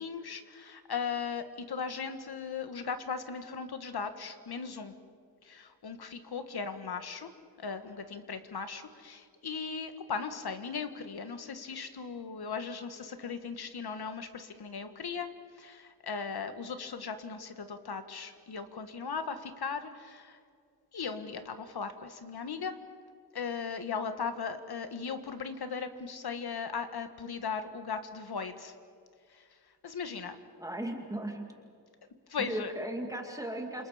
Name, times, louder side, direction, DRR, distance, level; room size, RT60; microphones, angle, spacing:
voice 1, 0.0-4.9 5.4-7.3 7.6-15.3 15.6-20.4 20.9-22.8 23.3-28.7 29.3-29.4 29.8-30.4 32.3-32.7, left 5 dB, 70° left, 9 dB, 1.6 m, -38 dB
voice 2, 30.6-31.5 32.5-33.9, right 1 dB, 10° right, 2 dB, 2.3 m, -36 dB
28.5 x 27.0 x 5.1 m, 2.3 s
wide cardioid pair, 140°, 40 cm